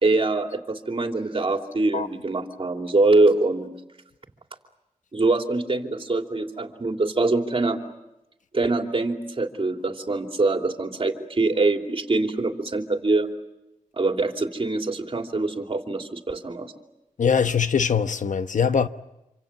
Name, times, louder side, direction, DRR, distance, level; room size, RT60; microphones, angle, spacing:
voice 1, 0.0-3.7 5.1-7.8 8.5-13.3 14.0-16.7, right 2 dB, 45° right, 2.9 m, -24 dB
voice 2, 17.2-18.9, left 6 dB, 70° left, 1.1 m, -22 dB
27.0 x 26.0 x 7.4 m
wide cardioid pair, 75°, 13 cm